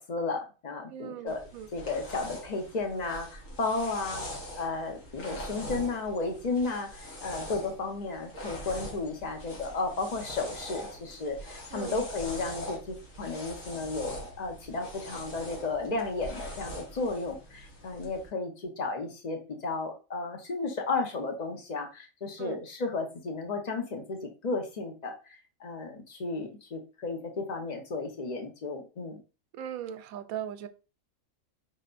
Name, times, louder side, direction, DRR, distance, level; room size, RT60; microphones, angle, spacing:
voice 1, 0.0-1.4 1.7-4.2 4.6-29.2, left 3 dB, 35° left, 3 dB, 1.0 m, -33 dB
voice 2, 0.9-1.7 11.7-12.0 22.4-22.6 29.5-30.7, right 10 dB, 85° right, 11 dB, 1.0 m, -38 dB
sound 1, 1.3-18.3, equal, 70° left, 1.8 m, -42 dB
5.4 x 3.7 x 2.5 m, 0.32 s
omnidirectional pair, 1.4 m